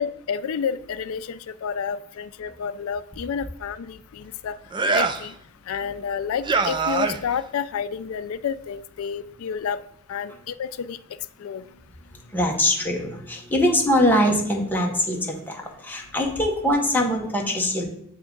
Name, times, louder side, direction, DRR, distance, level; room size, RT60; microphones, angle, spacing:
voice 1, 0.0-4.6 4.9-5.3 5.7-9.8 10.1-11.0 11.4-11.6, left 7 dB, 70° left, 14 dB, 0.3 m, -30 dB
sound 1, 4.7-5.3 6.4-7.4, right 4 dB, 20° right, 0.3 m, -23 dB
voice 2, 12.1-17.8, left 1 dB, 10° left, 0 dB, 0.9 m, -23 dB
7.6 x 3.5 x 3.8 m, 0.71 s
head